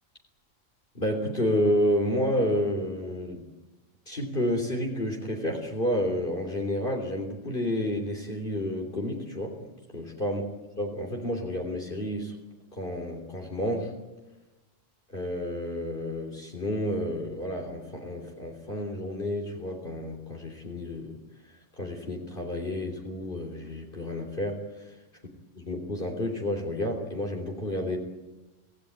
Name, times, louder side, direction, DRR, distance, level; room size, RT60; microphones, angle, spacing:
voice 1, 1.0-3.4 4.1-9.6 9.9-10.4 10.8-12.4 12.7-13.9 15.1-21.2 21.8-25.0 25.6-28.0, left 1 dB, 45° left, 1 dB, 3.6 m, -30 dB
26.0 x 17.0 x 9.6 m, 1.1 s
omnidirectional pair, 1.3 m